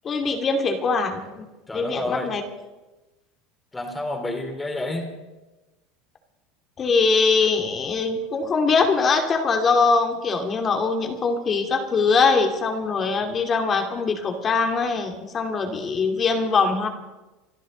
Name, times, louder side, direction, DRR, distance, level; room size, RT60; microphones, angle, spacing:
voice 1, 0.0-1.5 1.7-2.4 6.8-16.9, left 4 dB, 30° left, 4 dB, 2.4 m, -22 dB
voice 2, 1.7-2.3 3.7-5.1, left 2 dB, 10° left, 3 dB, 3.6 m, -29 dB
28.5 x 12.0 x 3.9 m, 1.1 s
supercardioid pair, 125°, 0 cm